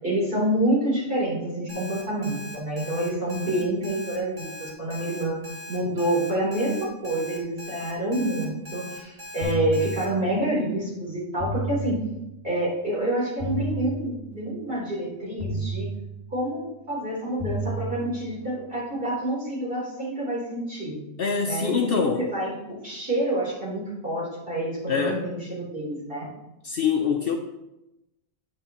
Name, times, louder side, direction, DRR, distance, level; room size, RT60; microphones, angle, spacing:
voice 1, 0.0-5.4 5.7-12.0 12.4-15.9 16.3-21.0 21.4-26.3, right 1 dB, 45° right, -6 dB, 3.9 m, -27 dB
Alarm, 1.7-10.1, left 1 dB, 30° right, 1.9 m, -40 dB
sound 1, 9.4-10.6 11.4-12.6 13.4-14.6 15.4-16.6 17.4-18.6, right 2 dB, 5° left, 1.8 m, -33 dB
voice 2, 21.2-22.2 24.9-25.3 26.6-27.4, left 6 dB, 60° left, 4 dB, 0.8 m, -24 dB
9.6 x 7.5 x 3.0 m, 0.92 s
omnidirectional pair, 1.3 m